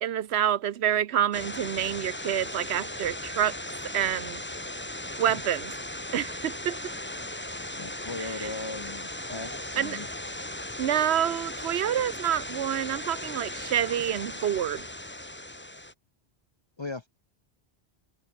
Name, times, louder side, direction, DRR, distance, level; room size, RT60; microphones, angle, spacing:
voice 1, 0.0-3.5 3.9-4.4 5.2-5.7 6.1-6.9 8.2-8.5 9.8-10.0 10.8-14.9, right 10 dB, 75° right, 1.0 m, -27 dB
sound 1, 1.3-15.9, left 1 dB, 10° left, 1.5 m, -37 dB
Screech, 7.2-13.2, left 1 dB, 65° left, 7.2 m, -62 dB
voice 2, 7.8-10.1 16.8-17.1, left 3 dB, 35° left, 0.5 m, -38 dB
omnidirectional pair, 1.1 m